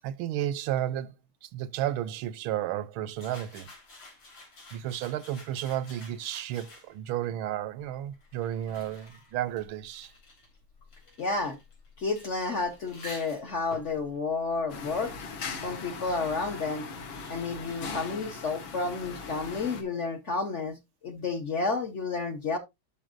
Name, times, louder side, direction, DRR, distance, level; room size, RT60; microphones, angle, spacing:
voice 1, 0.0-1.1 1.4-3.7 4.7-10.1, right 12 dB, 80° right, 1.4 m, -32 dB
martini shake pour, 3.1-7.1 7.9-15.3, left 2 dB, 90° left, 4.8 m, -50 dB
voice 2, 11.2-11.6 12.0-15.2 15.6-16.9 17.3-22.6, left 4 dB, 45° left, 1.0 m, -31 dB
sound 1, 14.7-19.8, left 5 dB, 70° left, 2.2 m, -39 dB
12.5 x 5.5 x 2.5 m
omnidirectional pair, 2.3 m